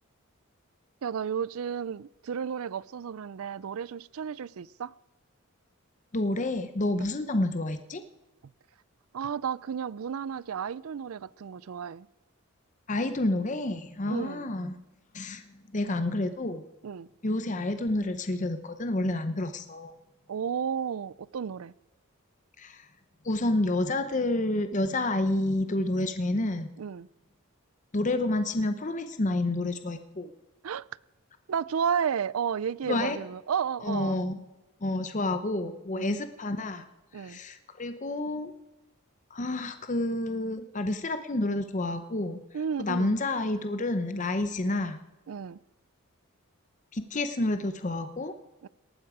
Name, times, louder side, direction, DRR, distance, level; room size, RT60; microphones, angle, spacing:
voice 1, 1.0-4.9 9.1-12.1 14.1-14.5 16.8-17.1 20.3-21.7 26.8-27.1 30.6-30.8 31.5-34.2 35.9-36.2 37.1-37.4 42.5-43.2 45.3-45.6 48.6-48.7, right 7 dB, 75° right, 0.4 m, -32 dB
voice 2, 6.1-8.0 12.9-14.8 15.1-15.4 15.7-16.6 17.2-19.9 22.6-22.9 23.2-26.7 27.9-30.3 32.9-33.2 33.8-34.4 34.8-36.9 37.1-38.5 39.3-42.4 42.8-45.0 46.9-48.3, left 2 dB, 35° left, 0.7 m, -29 dB
18.5 x 13.5 x 4.9 m
head